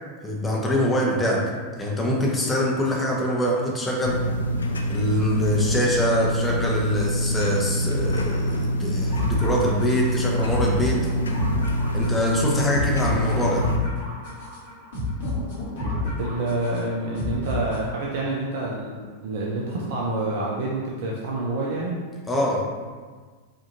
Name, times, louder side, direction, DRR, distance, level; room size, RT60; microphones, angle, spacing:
voice 1, 0.2-4.2 4.9-11.1 11.9-13.7 22.3-22.7, equal, 10° left, -3 dB, 0.8 m, -24 dB
sound 1, 4.0-13.8, equal, 75° left, 0.4 m, -25 dB
sound 2, 9.1-18.1, left 2 dB, 60° left, 1.2 m, -30 dB
voice 2, 16.2-22.0, right 2 dB, 55° right, -3 dB, 0.5 m, -28 dB
5.1 x 2.7 x 2.6 m, 1.5 s
figure-of-eight pair, 90°, 0 cm